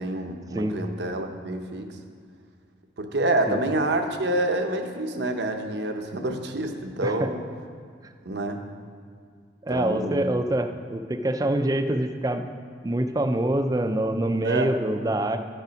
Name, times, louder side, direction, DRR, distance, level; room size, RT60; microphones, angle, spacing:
voice 1, 0.0-1.9 3.0-7.4 8.2-8.6 9.7-10.3 14.4-14.7, right 1 dB, 65° right, 5 dB, 0.7 m, -27 dB
voice 2, 9.6-12.4 12.8-15.4, right 1 dB, 20° right, 7 dB, 0.4 m, -25 dB
11.0 x 5.5 x 5.1 m, 2.1 s
head